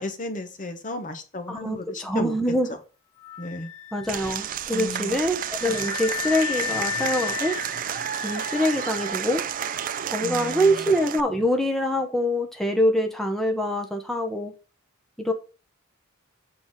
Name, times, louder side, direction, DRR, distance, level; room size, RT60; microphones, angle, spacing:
voice 1, 0.0-2.3 3.4-3.7 4.7-5.2 10.2-10.6, left 1 dB, 40° left, 1.0 m, -34 dB
voice 2, 1.5-2.8 3.9-7.6 8.2-9.4 10.1-14.5 15.2-15.3, equal, ahead, 0.9 m, -24 dB
Wind instrument woodwind instrument, 3.2-10.6, left 11 dB, 85° left, 1.8 m, -35 dB
Applause / Crowd, 4.1-11.2, right 9 dB, 40° right, 0.4 m, -31 dB
7.0 x 4.0 x 6.1 m
head